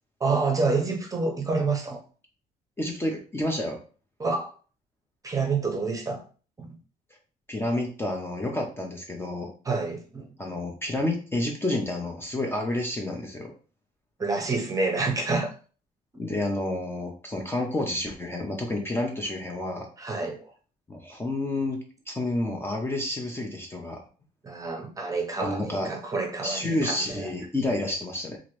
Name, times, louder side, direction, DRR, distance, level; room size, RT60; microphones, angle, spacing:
voice 1, 0.2-2.0 4.2-4.5 5.2-6.2 6.6-6.7 9.6-10.3 14.2-15.5 20.0-20.5 24.4-27.3, right 3 dB, 20° right, 1 dB, 0.8 m, -28 dB
voice 2, 2.8-3.8 7.5-9.5 10.4-13.5 16.2-19.9 20.9-21.8 22.1-24.0 25.4-25.9 26.4-28.4, left 1 dB, 15° left, 1 dB, 0.6 m, -29 dB
2.9 x 2.5 x 3.1 m, 0.38 s
cardioid pair, 110°, 17 cm